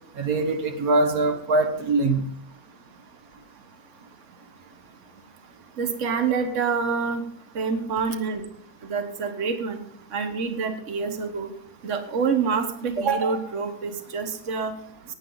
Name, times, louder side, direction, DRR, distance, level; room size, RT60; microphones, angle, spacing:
voice 1, 0.2-2.2, right 2 dB, 80° right, 6 dB, 1.6 m, -22 dB
voice 2, 5.8-7.2 7.5-8.5 8.9-9.8 10.1-11.5 11.8-14.7, right 5 dB, 60° right, 7 dB, 1.5 m, -26 dB
16.5 x 9.5 x 3.9 m, 0.68 s
omnidirectional pair, 1.5 m